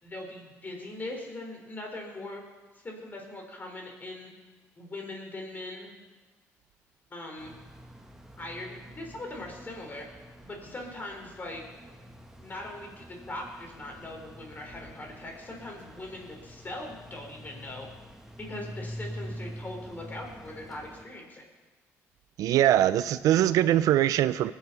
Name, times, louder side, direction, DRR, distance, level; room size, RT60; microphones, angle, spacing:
voice 1, 0.0-2.4 2.7-4.3 4.8-5.9 7.1-7.6 8.4-10.1 10.4-11.6 12.4-17.9 18.5-21.4, left 2 dB, 30° left, 1 dB, 4.3 m, -40 dB
sound 1, 7.4-21.0, equal, 5° right, 1.5 m, -46 dB
voice 2, 22.4-24.5, right 12 dB, 75° right, 15 dB, 0.5 m, -22 dB
20.0 x 7.2 x 5.6 m, 1.3 s
cardioid pair, 80°, 6 cm